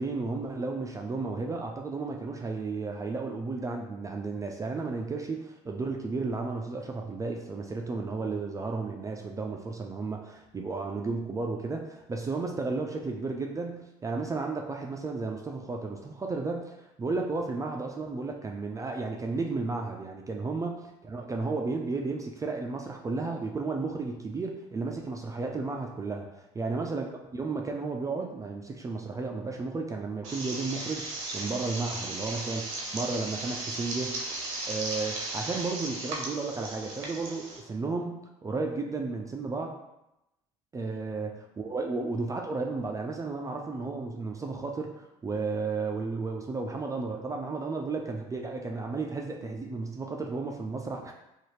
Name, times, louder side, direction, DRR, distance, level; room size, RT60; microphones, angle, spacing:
voice 1, 0.0-20.8 21.0-26.3 26.5-39.7 40.7-41.3 41.6-51.1, right 3 dB, 20° right, 1 dB, 0.3 m, -33 dB
sound 1, 30.2-37.6, right 2 dB, 85° right, 0.6 m, -36 dB
2.6 x 2.4 x 3.0 m, 0.90 s
hypercardioid pair, 70°, 16 cm